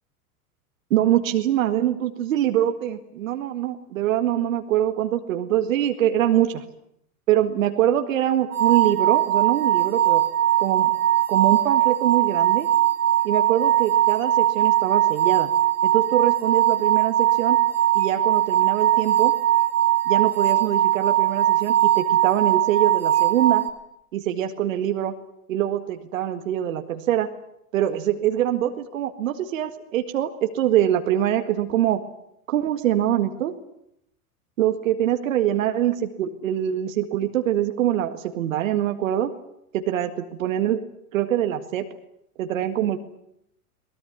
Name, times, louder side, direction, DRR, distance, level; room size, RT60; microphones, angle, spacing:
voice 1, 0.9-6.6 7.3-10.2 10.6-10.9 11.3-12.7 13.2-15.5 15.8-17.6 17.9-19.3 20.1-23.6 24.1-25.2 25.5-27.3 27.7-32.0 32.5-33.6 34.6-39.3 39.7-40.8 41.1-41.9 42.4-43.0, right 11 dB, 60° right, 7 dB, 2.0 m, -24 dB
sound 1, 8.5-23.7, right 12 dB, 80° right, 3.2 m, -20 dB
23.0 x 20.5 x 9.8 m, 0.76 s
figure-of-eight pair, 90°, 44 cm